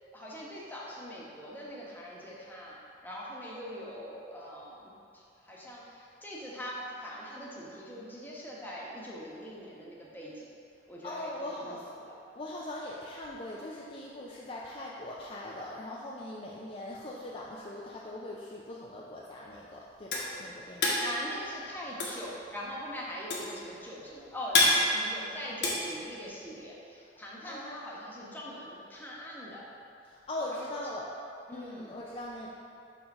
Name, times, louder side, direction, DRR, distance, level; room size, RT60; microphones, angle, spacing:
voice 1, 0.1-10.5 10.9-12.1 21.0-29.6 30.5-30.6 31.5-31.9, equal, 10° left, -6 dB, 1.1 m, -42 dB
voice 2, 11.0-11.8 12.3-20.9 27.0-27.1 27.4-27.9 30.0-31.1 31.5-32.5, left 1 dB, 30° left, -5 dB, 0.5 m, -41 dB
sound 1, 19.5-26.6, left 2 dB, 65° left, 1.4 m, -29 dB
6.9 x 3.6 x 5.4 m, 2.6 s
head